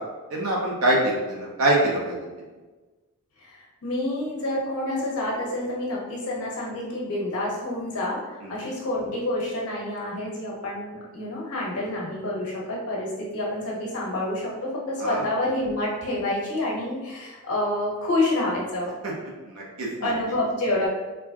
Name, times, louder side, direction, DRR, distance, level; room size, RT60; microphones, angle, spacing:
voice 1, 0.3-2.3 8.4-8.6 15.0-15.3 19.0-19.1 19.4-20.1, right 1 dB, 80° right, -4 dB, 1.1 m, -25 dB
voice 2, 3.4-18.9 20.0-20.9, left 1 dB, 85° left, -4 dB, 1.2 m, -28 dB
4.4 x 2.4 x 2.8 m, 1.2 s
head